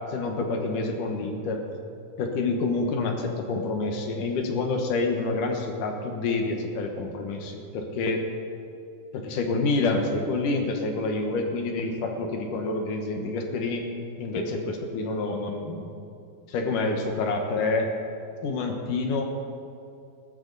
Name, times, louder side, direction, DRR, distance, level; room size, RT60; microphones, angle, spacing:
voice 1, 0.1-1.6 2.2-8.2 9.1-13.9 14.2-15.9 16.5-17.9 18.4-19.2, left 3 dB, 65° left, 3 dB, 2.5 m, -27 dB
19.5 x 14.0 x 4.0 m, 2.5 s
omnidirectional pair, 4.4 m